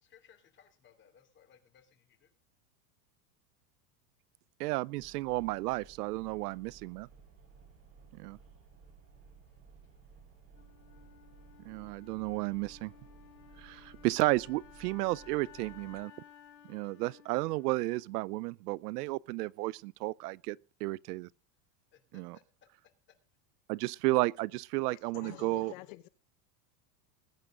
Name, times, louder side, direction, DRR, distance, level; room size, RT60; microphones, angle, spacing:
voice 1, 0.0-2.3 21.9-22.4, left 8 dB, 25° left, 3.0 m, -63 dB
voice 2, 4.6-7.1 8.2-8.4 11.7-12.9 13.6-16.1 16.7-21.3 22.1-22.4 23.7-25.7, right 20 dB, 70° right, 0.6 m, -33 dB
sound 1, 5.0-16.0, right 5 dB, 30° right, 6.4 m, -57 dB
Wind instrument woodwind instrument, 10.5-18.5, left 9 dB, 85° left, 5.0 m, -57 dB
voice 3, 24.9-26.1, left 19 dB, 55° left, 1.0 m, -48 dB
20.5 x 9.4 x 3.8 m
supercardioid pair, 165°, 48 cm